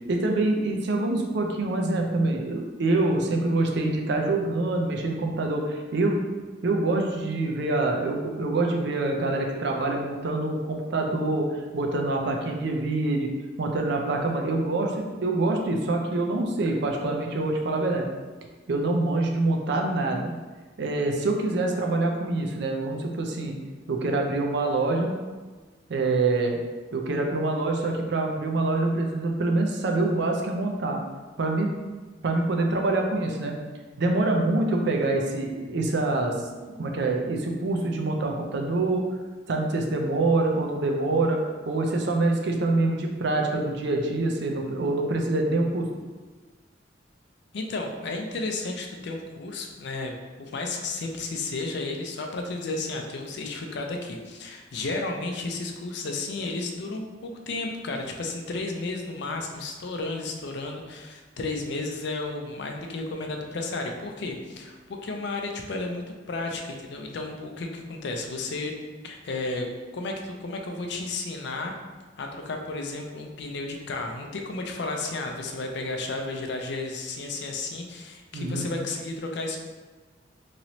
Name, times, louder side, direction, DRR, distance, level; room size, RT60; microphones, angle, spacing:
voice 1, 0.1-6.2 6.6-11.5 11.7-13.3 13.6-18.1 18.7-20.4 20.8-23.6 23.9-25.1 25.9-26.6 26.9-31.0 31.4-31.7 32.2-33.5 34.0-36.4 36.6-39.0 39.5-41.4 41.6-45.9 78.3-78.7, right 2 dB, 65° right, 2 dB, 0.5 m, -25 dB
voice 2, 47.5-68.7 69.0-69.7 69.9-71.7 72.1-79.6, left 3 dB, 65° left, 3 dB, 0.4 m, -33 dB
3.0 x 2.7 x 2.9 m, 1.3 s
head